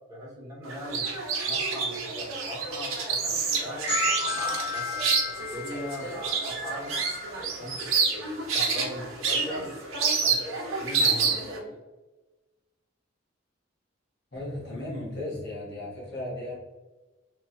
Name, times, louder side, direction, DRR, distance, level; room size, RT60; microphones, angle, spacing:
voice 1, 0.1-3.9 4.3-5.2 5.5-7.0 7.3-11.7, equal, 15° right, -6 dB, 1.0 m, -39 dB
sound 1, 0.7-11.6, right 4 dB, 90° right, 0.7 m, -28 dB
sound 2, 3.9-7.5, left 3 dB, 30° left, 0.6 m, -33 dB
voice 2, 14.3-16.6, left 1 dB, 55° left, -5 dB, 1.1 m, -35 dB
3.2 x 2.8 x 2.3 m, 1.2 s
head